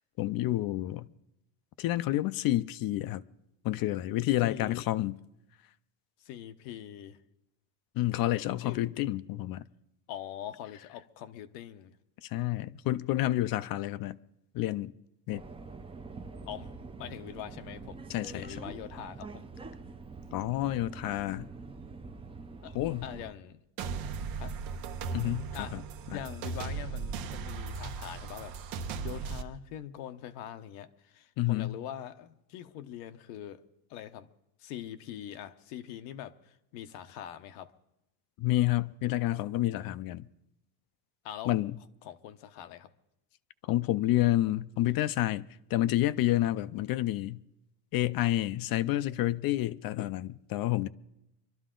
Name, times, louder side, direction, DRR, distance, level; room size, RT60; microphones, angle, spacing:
voice 1, 0.2-1.1 1.8-3.2 3.6-5.2 8.0-9.6 12.2-14.2 14.5-14.9 15.3-15.4 18.1-18.6 20.3-21.5 22.7-23.1 25.1-25.8 26.1-26.2 31.4-31.8 38.4-40.3 41.5-41.8 43.6-47.4 47.9-50.9, left 15 dB, 45° left, 0.5 m, -29 dB
voice 2, 4.4-4.8 6.2-7.2 8.6-9.0 10.1-12.0 16.5-16.7 17.0-18.0 18.2-19.4 22.6-22.7 23.0-23.6 24.4-24.6 25.5-25.8 26.1-28.6 29.0-33.6 33.9-34.3 34.6-37.7 41.2-41.5 42.0-42.9, left 11 dB, 85° left, 1.0 m, -43 dB
Subway metro underground, 15.3-23.3, right 4 dB, 10° right, 0.5 m, -45 dB
sound 1, 23.8-29.4, right 5 dB, 85° right, 1.2 m, -37 dB
24.0 x 12.5 x 3.8 m
cardioid pair, 135°, 48 cm